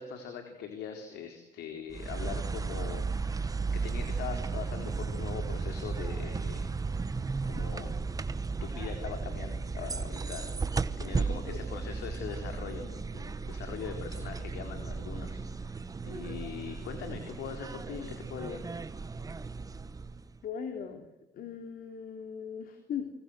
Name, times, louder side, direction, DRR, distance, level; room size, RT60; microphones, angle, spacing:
voice 1, 0.0-6.7 7.4-8.0 8.6-18.6, left 7 dB, 80° left, 4 dB, 4.0 m, -42 dB
sound 1, 1.9-20.4, right 4 dB, 20° right, 1.2 m, -35 dB
voice 2, 20.4-21.1 21.3-23.1, left 7 dB, 60° left, 6 dB, 3.2 m, -39 dB
29.0 x 24.5 x 7.9 m, 0.90 s
cardioid pair, 110°, 17 cm